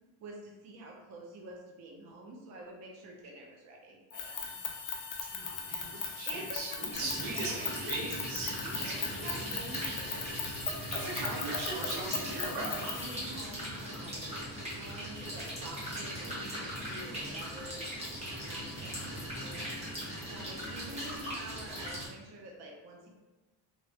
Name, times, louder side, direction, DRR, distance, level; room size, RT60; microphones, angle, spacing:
voice 1, 0.2-4.6 6.3-6.6 6.9-8.1 8.9-10.5 11.2-14.2 14.7-17.8 18.4-19.7 20.3-23.1, right 2 dB, 40° right, 0 dB, 0.4 m, -47 dB
sound 1, 4.1-13.3, left 6 dB, 45° left, 0.4 m, -38 dB
voice 2, 5.3-9.5 10.9-12.8, right 2 dB, 80° right, -3 dB, 1.0 m, -39 dB
sound 2, 6.9-22.1, equal, 15° right, 0.9 m, -40 dB
sound 3, 7.7-21.9, equal, 10° left, 0.9 m, -54 dB
3.2 x 2.4 x 2.7 m, 1.2 s
cardioid pair, 165°, 46 cm